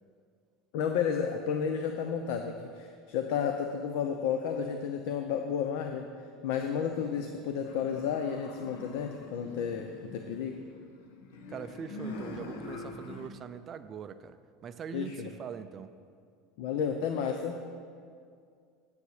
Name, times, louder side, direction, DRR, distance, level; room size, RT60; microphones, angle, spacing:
voice 1, 0.7-6.1 6.4-10.6 14.9-15.3 16.6-17.6, left 7 dB, 55° left, 5 dB, 0.7 m, -32 dB
sound 1, 6.9-13.3, left 2 dB, 90° left, 1.2 m, -45 dB
voice 2, 11.5-16.0, right 7 dB, 20° right, 11 dB, 0.4 m, -42 dB
9.7 x 8.5 x 6.5 m, 2.3 s
cardioid pair, 180°, 0 cm